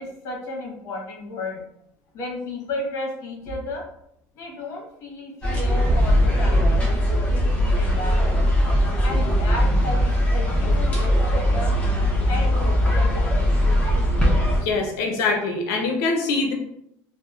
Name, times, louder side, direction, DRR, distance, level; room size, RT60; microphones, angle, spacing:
voice 1, 0.0-1.6 2.1-3.8 4.3-6.7 7.3-8.2 9.0-10.0 10.3-11.7 12.3-13.4, left 2 dB, 55° left, -2 dB, 1.0 m, -33 dB
sound 1, 5.4-14.6, equal, 20° left, 0.7 m, -20 dB
voice 2, 14.6-16.5, left 3 dB, 70° left, 2 dB, 0.6 m, -24 dB
2.8 x 2.0 x 2.3 m, 0.76 s
supercardioid pair, 120°, 6 cm